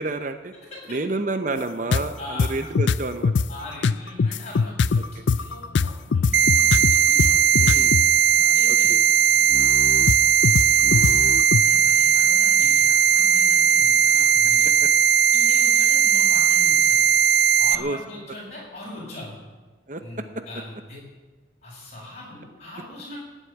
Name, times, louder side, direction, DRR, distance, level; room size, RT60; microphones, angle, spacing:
voice 1, 0.0-0.5 0.9-3.3 7.6-7.9 8.7-9.0 17.8-18.0 19.9-20.0, right 2 dB, 45° right, 8 dB, 0.8 m, -29 dB
voice 2, 0.6-1.0 2.2-2.5 3.5-8.0 8.5-8.9 9.2-11.1 11.6-14.7 15.3-17.0 17.6-19.4 20.0-21.0 21.6-23.2, left 2 dB, 35° left, -4 dB, 7.3 m, -41 dB
sound 1, 1.9-2.0 2.4-3.5 3.8-8.1 9.5-11.6, left 5 dB, 75° left, 0.5 m, -21 dB
sound 2, 6.3-17.8, right 9 dB, 75° right, 0.7 m, -18 dB
17.5 x 8.2 x 9.3 m, 1.3 s
head